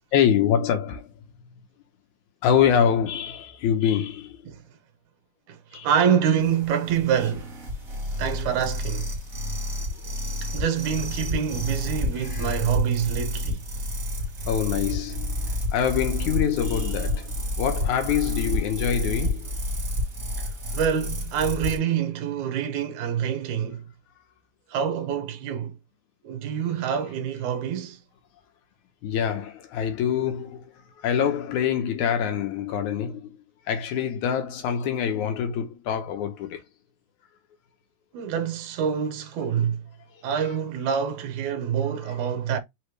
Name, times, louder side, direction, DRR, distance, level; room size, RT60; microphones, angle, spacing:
voice 1, 0.1-1.1 2.4-4.4 5.7-5.9 10.0-10.1 12.2-12.5 14.5-19.6 29.0-30.6 31.0-33.4 33.7-36.6, left 8 dB, 80° left, 2.3 m, -25 dB
voice 2, 5.5-7.5 8.2-9.1 10.4-13.6 20.4-23.9 24.7-25.7 26.2-28.0 38.1-39.8 40.2-42.6, right 8 dB, 80° right, 2.4 m, -26 dB
sound 1, 6.4-21.8, left 1 dB, 40° right, 1.3 m, -30 dB
5.5 x 3.1 x 3.1 m
omnidirectional pair, 3.4 m